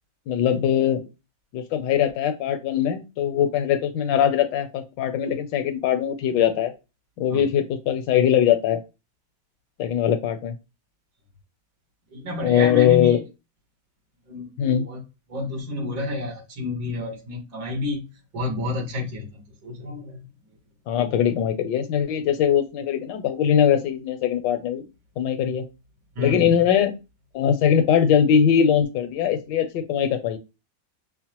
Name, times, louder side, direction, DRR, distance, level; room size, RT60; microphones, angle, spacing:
voice 1, 0.3-1.0 1.5-6.7 7.2-8.8 9.8-10.5 12.4-13.2 14.6-14.9 20.9-24.9 25.2-25.6 26.2-26.9 27.3-30.4, left 9 dB, 75° left, 8 dB, 1.3 m, -21 dB
voice 2, 12.1-13.2 14.3-14.5 14.8-15.0 15.3-18.1 18.3-20.2 26.2-26.5, left 3 dB, 80° right, -1 dB, 2.1 m, -30 dB
5.6 x 2.1 x 2.9 m, 0.27 s
omnidirectional pair, 2.0 m